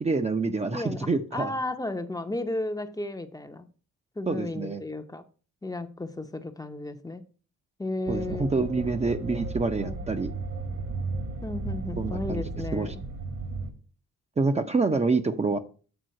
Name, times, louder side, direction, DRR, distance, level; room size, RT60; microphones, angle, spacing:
voice 1, 0.0-1.5 4.3-4.8 8.1-10.3 12.0-12.4 12.7-12.9 14.4-15.6, right 3 dB, 20° right, 0.7 m, -27 dB
voice 2, 0.7-3.7 4.2-5.2 5.6-7.2 7.8-8.6 9.8-10.0 11.4-13.0, left 2 dB, 10° left, 0.7 m, -34 dB
sound 1, 8.1-13.7, right 3 dB, 50° right, 1.4 m, -34 dB
8.0 x 3.7 x 6.4 m
cardioid pair, 90°, 30 cm